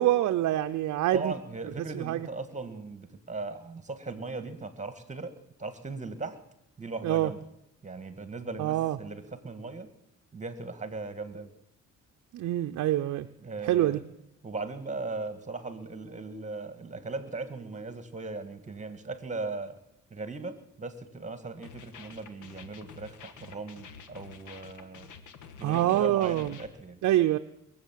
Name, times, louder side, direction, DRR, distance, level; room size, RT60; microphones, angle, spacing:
voice 1, 0.0-1.3 1.8-2.3 7.0-7.3 8.6-9.0 12.3-13.3 13.6-14.0 25.6-26.6 27.0-27.4, right 13 dB, 65° right, 7 dB, 0.6 m, -26 dB
voice 2, 1.1-5.3 5.6-6.4 6.8-7.4 7.8-9.9 10.3-11.5 13.4-14.0 14.4-19.8 20.1-25.1 25.6-27.0, right 3 dB, 25° right, 12 dB, 1.8 m, -38 dB
sound 1, 21.6-26.7, left 6 dB, 85° left, 1.4 m, -49 dB
22.0 x 7.9 x 7.5 m, 0.83 s
cardioid pair, 90°, 30 cm